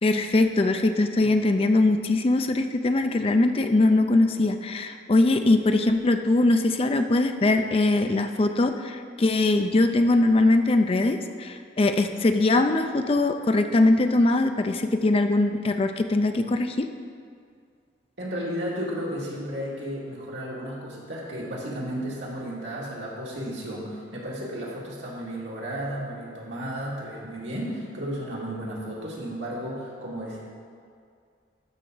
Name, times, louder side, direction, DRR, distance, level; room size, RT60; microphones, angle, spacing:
voice 1, 0.0-16.9, left 2 dB, 30° left, 7 dB, 0.4 m, -21 dB
voice 2, 18.2-30.4, equal, 85° right, -5 dB, 2.2 m, -33 dB
12.5 x 5.7 x 3.9 m, 2.2 s
head